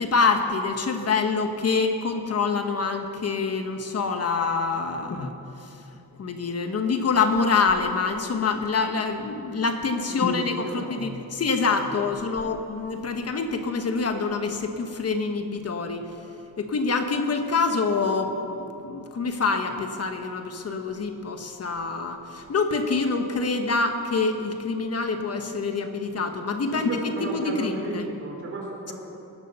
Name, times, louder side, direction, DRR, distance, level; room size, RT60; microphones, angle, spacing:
voice 1, 0.0-5.8 6.2-16.1 16.6-26.9 27.2-28.0, left 4 dB, 40° left, 6 dB, 1.2 m, -26 dB
voice 2, 10.1-11.0 11.6-11.7 26.7-28.9, right 2 dB, 35° right, -2 dB, 4.6 m, -35 dB
19.5 x 11.0 x 6.8 m, 2.8 s
cardioid pair, 135°, 37 cm